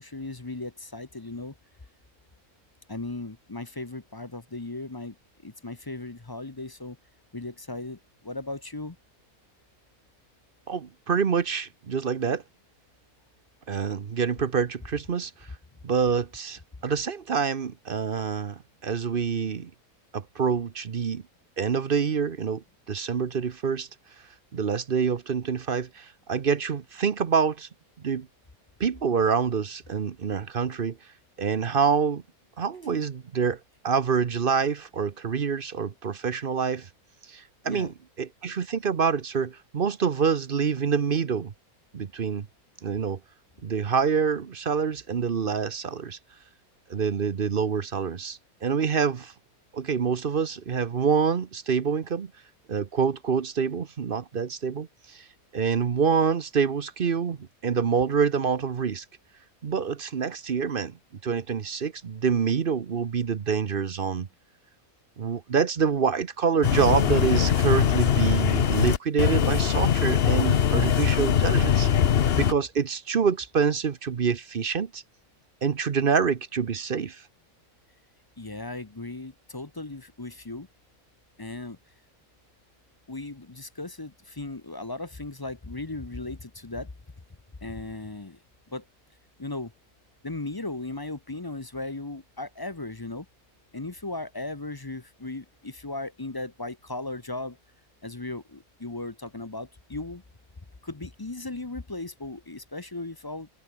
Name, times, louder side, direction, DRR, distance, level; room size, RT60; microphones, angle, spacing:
voice 1, 0.0-1.5 2.9-5.1 5.4-7.0 7.3-9.0 37.6-37.9 78.4-80.7 81.4-81.8 83.1-86.9 87.6-88.4 88.7-88.8 89.4-89.7 90.2-93.3 93.7-97.6 98.0-100.2 100.8-103.5, left 2 dB, 20° left, 0.8 m, -37 dB
voice 2, 10.7-12.4 13.7-15.3 15.8-19.7 20.1-21.2 21.6-23.9 24.5-27.7 28.0-28.3 28.8-31.0 31.4-32.2 32.6-33.6 33.8-36.9 37.3-41.5 41.9-42.5 42.8-43.2 43.6-46.2 46.9-49.3 49.7-52.3 52.7-55.2 55.5-59.0 59.6-60.9 61.2-64.3 65.2-71.9 72.4-75.0 75.6-77.2, right 6 dB, 45° right, 0.9 m, -26 dB
sound 1, 66.6-72.5, left 8 dB, 50° left, 0.9 m, -22 dB
omnidirectional pair, 1.5 m